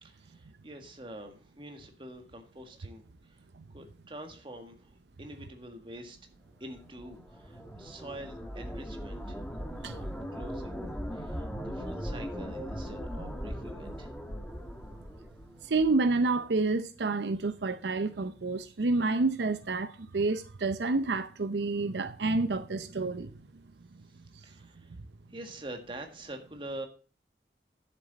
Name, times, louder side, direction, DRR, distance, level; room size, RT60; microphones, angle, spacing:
voice 1, 0.0-3.4 3.7-6.2 6.6-9.4 9.7-14.1 24.1-25.0 25.3-26.9, right 1 dB, 30° right, 1.7 m, -46 dB
sound 1, 6.8-16.0, equal, 5° left, 1.2 m, -39 dB
voice 2, 15.6-23.3, right 3 dB, 80° right, 0.7 m, -29 dB
11.0 x 7.7 x 4.1 m
head